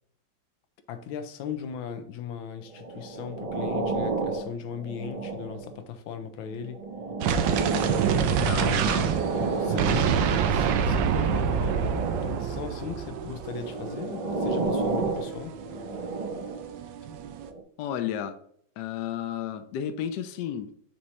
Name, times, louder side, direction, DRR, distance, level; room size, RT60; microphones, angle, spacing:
voice 1, 0.9-6.8 8.3-8.9 9.6-15.6, left 7 dB, 85° left, 1.5 m, -38 dB
sound 1, 2.7-5.8 6.5-10.7 11.4-12.6 13.4-16.7 17.4-17.6, right 3 dB, 40° right, 0.5 m, -32 dB
sound 2, 7.2-17.5, right 7 dB, 80° right, 1.4 m, -27 dB
voice 2, 8.3-9.1 17.8-18.4 18.8-20.8, left 9 dB, 70° left, 1.1 m, -32 dB
6.9 x 3.2 x 4.8 m
omnidirectional pair, 2.1 m